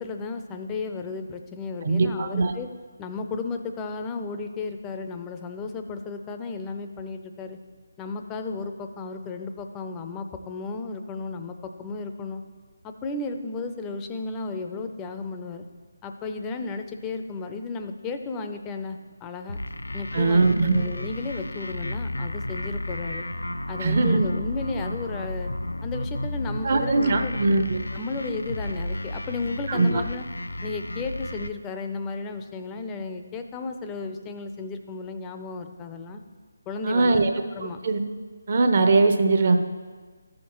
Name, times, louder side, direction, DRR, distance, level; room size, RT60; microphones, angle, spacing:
voice 1, 0.0-2.7 3.0-7.6 8.0-12.4 12.8-15.6 16.0-19.6 19.9-23.3 23.7-25.5 25.8-27.4 27.9-30.2 30.6-36.2 36.7-37.2 37.5-37.8, left 3 dB, 15° left, 6 dB, 0.5 m, -34 dB
voice 2, 1.8-2.5 20.1-20.8 23.8-24.3 26.6-27.9 29.7-30.0 36.9-37.3 37.8-38.0 38.5-39.6, right 3 dB, 45° right, 6 dB, 0.8 m, -21 dB
sound 1, 19.5-31.5, left 1 dB, 80° left, 0.5 m, -33 dB
14.5 x 6.4 x 3.1 m, 1.5 s
figure-of-eight pair, 155°, 0 cm